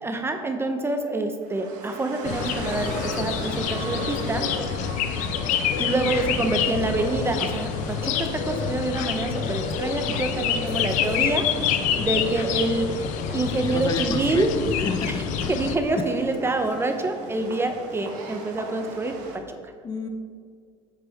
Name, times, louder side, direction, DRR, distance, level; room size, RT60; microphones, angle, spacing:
voice 1, 0.0-4.5 5.8-13.1 13.3-14.5 15.1-15.2 15.5-19.6, right 2 dB, 15° right, 5 dB, 0.9 m, -27 dB
sound 1, 1.4-19.4, right 3 dB, 70° right, 1.5 m, -39 dB
sound 2, 2.2-15.8, left 8 dB, 65° left, 0.7 m, -27 dB
voice 2, 13.6-14.5 14.8-15.5 15.9-16.1 19.8-20.1, left 3 dB, 30° left, 5 dB, 0.9 m, -31 dB
9.5 x 8.4 x 3.6 m, 2.1 s
supercardioid pair, 95°, 14 cm